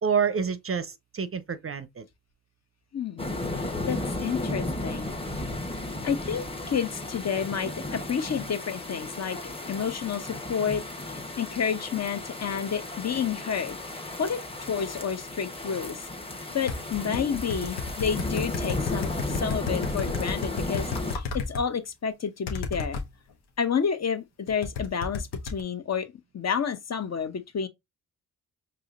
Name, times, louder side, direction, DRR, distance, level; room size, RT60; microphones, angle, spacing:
voice 1, 0.0-2.0, right 6 dB, 35° right, 0.5 m, -28 dB
voice 2, 2.9-3.3 3.9-5.1 6.0-9.4 9.7-16.0 16.5-20.9 21.1-23.0 23.6-27.7, left 7 dB, 40° left, 0.7 m, -30 dB
sound 1, 3.2-21.2, left 2 dB, 15° left, 1.0 m, -34 dB
sound 2, 16.7-21.6 22.5-23.1 24.5-25.6, left 4 dB, 75° left, 1.0 m, -32 dB
4.8 x 2.9 x 2.4 m
cardioid pair, 55°, 39 cm